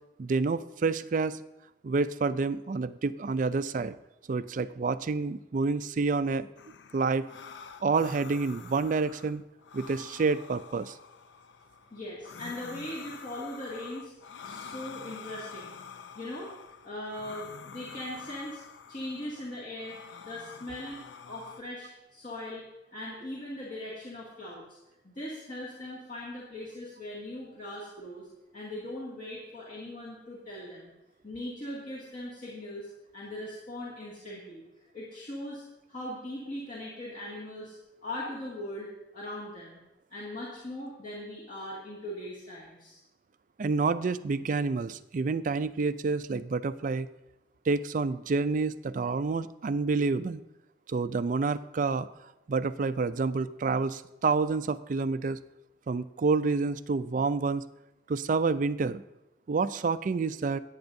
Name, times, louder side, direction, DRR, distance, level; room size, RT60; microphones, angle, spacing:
voice 1, 0.2-1.4 1.8-4.0 4.3-6.5 6.9-7.3 7.8-9.4 9.7-11.0 43.6-47.1 47.7-50.4 50.9-52.1 52.5-55.4 55.9-57.6 58.1-59.0 59.5-60.6, right 4 dB, 45° right, 13 dB, 0.4 m, -28 dB
sound 1, 6.6-21.6, left 6 dB, 85° left, 0.5 m, -47 dB
voice 2, 11.9-14.1 14.4-15.8 16.1-16.5 16.8-18.6 18.9-22.7 22.9-24.7 25.0-28.3 28.5-30.9 31.2-34.6 34.9-35.6 35.9-37.7 38.0-38.9 39.1-39.8 40.1-43.0, left 1 dB, 45° left, -7 dB, 2.1 m, -40 dB
17.5 x 8.7 x 2.7 m, 0.93 s
head